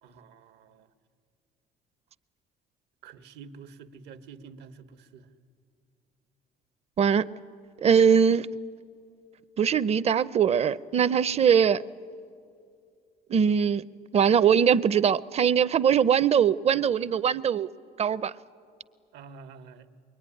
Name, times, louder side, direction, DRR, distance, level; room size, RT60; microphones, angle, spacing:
voice 1, 0.0-0.9 3.0-5.3 19.1-19.9, right 5 dB, 85° right, 1.2 m, -48 dB
voice 2, 7.0-7.3 7.8-8.5 9.6-11.8 13.3-13.8 14.1-17.7 18.0-18.3, right 7 dB, 40° right, 0.6 m, -21 dB
24.0 x 23.0 x 9.9 m
cardioid pair, 110°, 17 cm